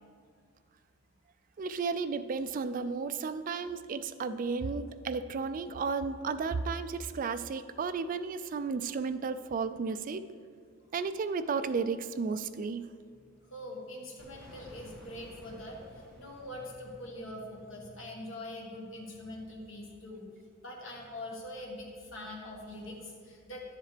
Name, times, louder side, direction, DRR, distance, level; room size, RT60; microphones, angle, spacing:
voice 1, 1.6-10.3 10.9-12.8, right 5 dB, 40° right, 11 dB, 0.3 m, -33 dB
voice 2, 13.5-20.3 20.6-23.6, left 1 dB, 70° left, -1 dB, 1.5 m, -43 dB
sound 1, 14.2-18.8, equal, 5° left, 1.4 m, -55 dB
10.5 x 7.4 x 3.3 m, 2.1 s
head